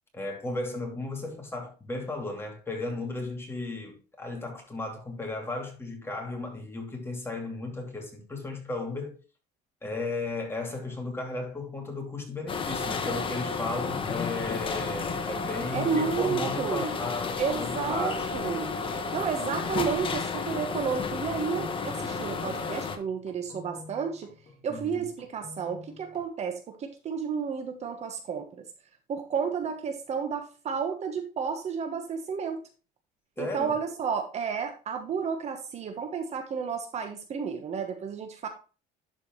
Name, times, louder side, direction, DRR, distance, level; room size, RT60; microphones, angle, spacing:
voice 1, 0.1-9.2 9.8-18.3 24.7-25.1 33.4-33.8, left 2 dB, 15° left, 2.8 m, -35 dB
sound 1, 12.5-23.0, left 4 dB, 30° left, 1.2 m, -32 dB
voice 2, 15.7-17.0 17.4-18.8 19.1-24.3 24.6-28.7 29.1-32.6 33.4-38.5, right 6 dB, 40° right, 1.3 m, -31 dB
sound 2, 22.5-26.2, left 3 dB, 55° left, 3.9 m, -50 dB
11.5 x 4.9 x 3.1 m
cardioid pair, 130°, 17 cm